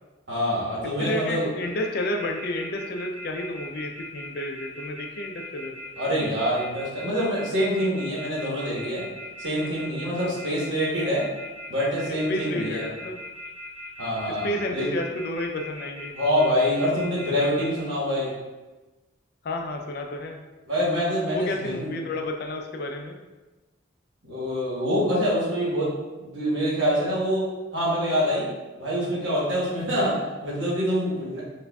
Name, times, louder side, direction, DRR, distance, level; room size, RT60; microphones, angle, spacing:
voice 1, 0.3-1.5 6.0-9.0 9.4-11.3 11.7-12.8 14.0-14.9 16.1-18.3 20.7-21.9 24.2-25.9 26.2-27.4 27.7-28.5 28.8-31.4, equal, 70° right, -6 dB, 1.2 m, -25 dB
voice 2, 1.0-5.7 9.6-9.7 10.2-10.4 12.3-13.2 14.3-16.1 19.4-20.4 21.3-23.2, left 1 dB, 50° left, 3 dB, 0.3 m, -31 dB
sound 1, 1.6-17.8, equal, 20° right, 1.0 m, -40 dB
4.6 x 2.5 x 2.2 m, 1.2 s
head